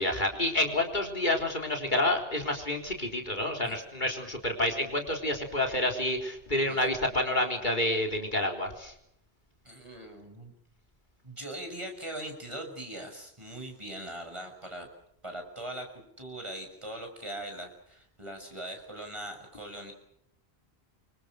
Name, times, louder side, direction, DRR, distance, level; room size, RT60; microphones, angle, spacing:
voice 1, 0.0-8.9, left 1 dB, 50° left, 3 dB, 4.0 m, -29 dB
voice 2, 9.6-10.5 11.2-14.9 15.2-15.9 16.2-19.9, right 1 dB, 30° right, 4 dB, 6.6 m, -41 dB
29.0 x 25.0 x 6.4 m, 0.72 s
omnidirectional pair, 1.1 m